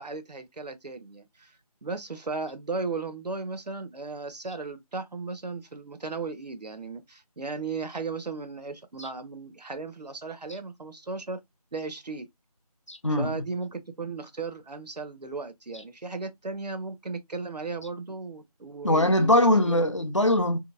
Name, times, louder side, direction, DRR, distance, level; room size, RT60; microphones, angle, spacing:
voice 1, 0.0-11.4 11.7-12.3 13.1-19.3 19.6-19.9, right 4 dB, 85° right, 0.7 m, -36 dB
voice 2, 12.9-13.4 18.8-20.6, left 1 dB, 50° left, 0.5 m, -22 dB
2.8 x 2.6 x 2.5 m
figure-of-eight pair, 175°, 20 cm